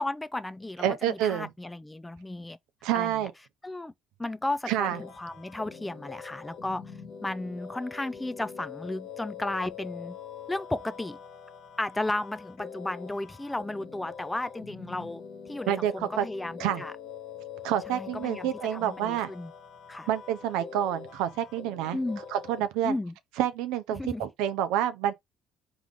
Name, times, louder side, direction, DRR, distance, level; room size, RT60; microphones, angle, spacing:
voice 1, 0.0-2.6 2.9-3.1 3.6-3.9 4.2-6.8 7.2-10.2 10.5-11.2 11.8-15.2 15.5-16.9 17.9-19.5 19.9-20.1 21.9-22.2 22.8-23.1 23.9-24.2, left 2 dB, 10° left, 0.3 m, -34 dB
voice 2, 0.8-1.5 2.8-3.3 4.7-5.0 15.7-16.3 16.6-16.8 17.6-19.3 20.1-22.0 22.3-23.0 23.4-25.1, right 11 dB, 90° right, 0.6 m, -28 dB
sound 1, 4.8-22.7, left 7 dB, 65° left, 1.3 m, -44 dB
3.7 x 3.0 x 3.6 m
cardioid pair, 100°, 0 cm